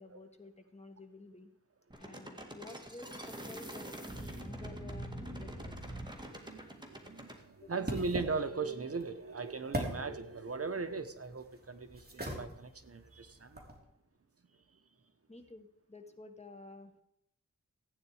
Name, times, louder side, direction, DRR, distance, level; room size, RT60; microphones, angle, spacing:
voice 1, 0.0-1.5 2.0-5.8 7.6-7.8 15.3-17.0, left 2 dB, 20° left, 1.5 m, -52 dB
sound 1, 1.9-7.4, right 1 dB, 15° right, 2.2 m, -44 dB
sound 2, 6.1-13.8, equal, 35° right, 3.2 m, -44 dB
voice 2, 6.2-13.6, right 4 dB, 50° right, 1.1 m, -39 dB
15.5 x 9.3 x 4.9 m
wide cardioid pair, 85°, 30 cm